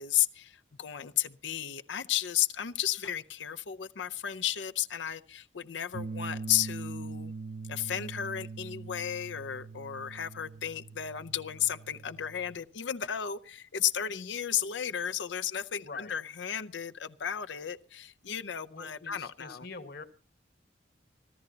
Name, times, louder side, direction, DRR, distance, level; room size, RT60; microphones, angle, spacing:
voice 1, 0.0-7.3 7.7-19.7, left 10 dB, 90° left, 12 dB, 0.6 m, -33 dB
sound 1, 5.9-12.6, right 4 dB, 55° right, 0.8 m, -42 dB
voice 2, 15.8-16.1 18.7-20.0, left 3 dB, 60° left, 9 dB, 1.5 m, -45 dB
24.5 x 14.0 x 2.8 m, 0.35 s
head